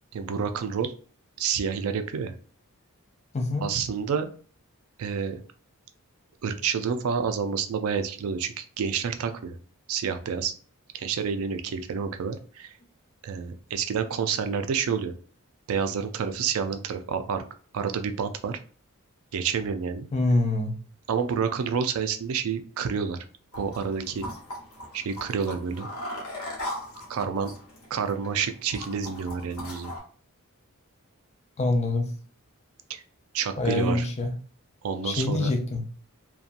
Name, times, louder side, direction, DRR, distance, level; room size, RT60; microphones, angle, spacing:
voice 1, 0.1-0.9 1.4-2.3 3.6-4.3 5.0-5.4 6.4-9.6 9.9-10.5 10.9-12.7 13.2-15.1 15.7-17.4 17.7-18.6 19.3-20.1 21.1-23.2 23.6-24.3 24.9-25.9 27.1-27.5 27.9-29.9 32.9-33.0 33.3-34.1 34.8-35.5, right 6 dB, 75° right, 8 dB, 0.4 m, -29 dB
voice 2, 3.3-3.6 20.1-20.7 31.6-32.1 33.6-34.3 35.0-35.8, left 2 dB, 30° left, 3 dB, 0.5 m, -25 dB
sound 1, 23.5-30.0, left 1 dB, 80° left, 1.0 m, -39 dB
2.7 x 2.2 x 2.5 m, 0.42 s
head